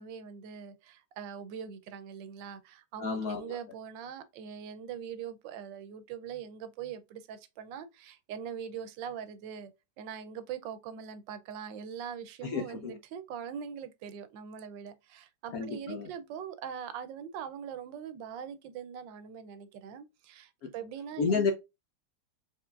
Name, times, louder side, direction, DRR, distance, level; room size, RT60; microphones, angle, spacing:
voice 1, 0.0-9.7 10.0-21.3, right 8 dB, 80° right, 1.3 m, -42 dB
voice 2, 3.0-3.6 12.4-13.0 15.5-16.1 20.6-20.7 21.2-21.5, left 5 dB, 65° left, 0.9 m, -31 dB
4.5 x 3.7 x 2.3 m
omnidirectional pair, 2.0 m